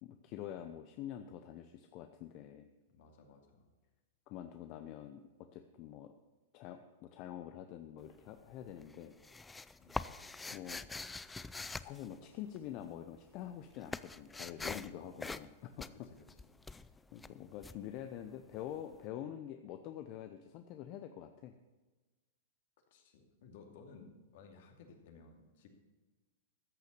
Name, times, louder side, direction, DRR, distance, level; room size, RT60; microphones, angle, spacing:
voice 1, 0.0-2.7 4.3-6.1 6.5-9.1 10.5-10.8 11.8-15.9 17.1-21.6, left 11 dB, 45° left, 7 dB, 0.8 m, -46 dB
voice 2, 2.9-3.6 9.8-10.2 14.9-15.3 15.9-16.5 17.4-17.5 22.9-25.7, left 4 dB, 65° left, 3 dB, 2.6 m, -58 dB
sound 1, 8.0-8.5 8.8-12.9 13.1-18.7, left 3 dB, 10° left, 0.4 m, -44 dB
13.5 x 6.6 x 6.8 m, 1.2 s
hypercardioid pair, 120°, 0 cm